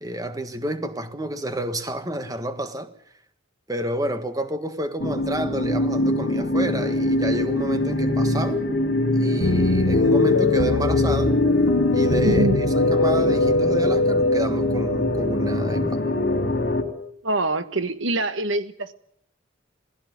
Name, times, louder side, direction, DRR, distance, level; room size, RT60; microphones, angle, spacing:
voice 1, 0.0-2.9 3.7-8.6 9.1-11.3 11.9-16.0, right 1 dB, 20° right, 1.5 m, -29 dB
sound 1, 5.0-16.8, left 1 dB, 55° left, 3.3 m, -24 dB
sound 2, 9.4-16.9, left 2 dB, 85° left, 0.9 m, -22 dB
voice 2, 12.2-12.6 17.2-18.9, right 2 dB, 80° right, 1.5 m, -24 dB
19.5 x 16.0 x 9.6 m
head